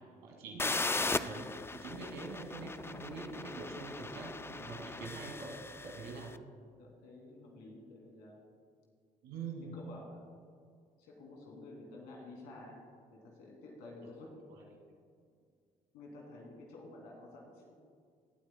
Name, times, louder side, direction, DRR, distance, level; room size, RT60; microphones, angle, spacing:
voice 1, 0.2-0.7 1.0-1.5 1.7-5.6 5.8-6.3 9.2-9.7 14.5-14.6, right 4 dB, 85° right, 0 dB, 2.3 m, -44 dB
sound 1, 0.6-6.3, left 3 dB, 15° left, 0.4 m, -38 dB
voice 2, 6.8-8.4 9.6-10.3 11.0-12.8 13.1-14.3 15.9-17.7, left 2 dB, 90° left, -1 dB, 2.5 m, -51 dB
19.0 x 8.6 x 2.2 m, 2.2 s
supercardioid pair, 65°, 17 cm